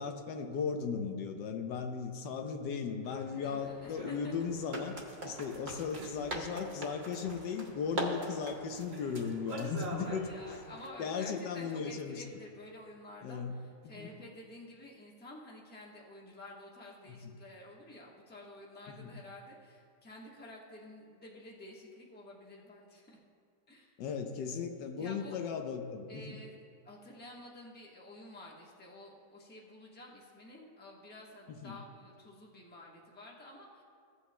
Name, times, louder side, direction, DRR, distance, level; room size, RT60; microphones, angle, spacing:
voice 1, 0.0-5.0 5.2-10.3 11.0-12.2 13.2-13.6 13.8-14.1 17.1-17.3 19.0-19.1 24.0-26.4 31.5-31.8, left 6 dB, 85° left, 5 dB, 1.3 m, -37 dB
sound 1, 3.0-10.9, right 1 dB, 40° right, 1.3 m, -42 dB
voice 2, 3.3-4.5 9.9-23.2 23.7-23.9 24.9-25.4 26.1-33.8, left 1 dB, 5° left, -3 dB, 0.8 m, -51 dB
16.0 x 8.3 x 2.2 m, 2.2 s
omnidirectional pair, 1.9 m